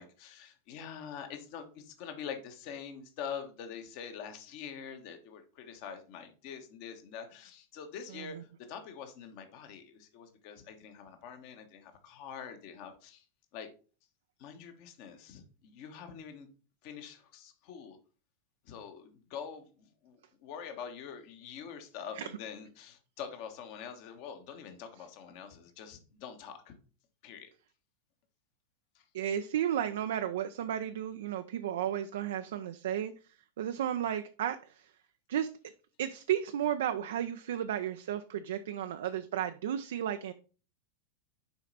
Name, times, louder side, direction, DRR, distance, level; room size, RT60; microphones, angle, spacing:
voice 1, 0.0-13.2 13.5-13.7 14.4-16.5 16.8-18.0 18.7-26.7 27.2-27.5 28.9-29.0, left 7 dB, 45° left, 7 dB, 1.3 m, -45 dB
voice 2, 29.1-33.1 33.6-34.9 35.3-35.5 36.0-40.3, right 10 dB, 60° right, 9 dB, 0.4 m, -33 dB
7.0 x 5.0 x 4.1 m, 0.37 s
figure-of-eight pair, 90°, 0 cm